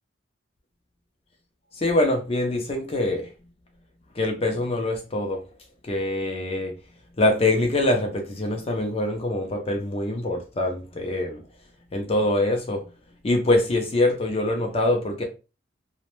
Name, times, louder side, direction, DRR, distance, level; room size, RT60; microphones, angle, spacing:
voice 1, 1.8-3.3 4.2-5.4 5.9-6.7 7.2-11.4 11.9-12.9 13.2-15.2, left 1 dB, 30° left, 0.4 m, -24 dB
2.5 x 2.1 x 3.0 m
head